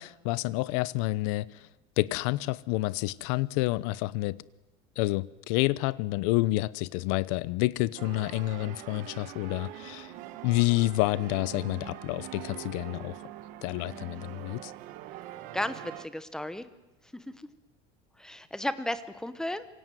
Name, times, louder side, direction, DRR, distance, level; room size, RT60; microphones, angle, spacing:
voice 1, 0.0-1.7 2.0-4.4 5.0-10.1 10.4-13.2 13.6-14.7, left 19 dB, 65° left, 1.0 m, -29 dB
Tuning at Couch, 8.0-16.1, right 14 dB, 50° right, 1.6 m, -43 dB
voice 2, 15.5-16.7 17.1-17.5 18.2-19.7, left 1 dB, 5° left, 1.0 m, -34 dB
27.0 x 23.5 x 9.3 m
cardioid pair, 180°, 18 cm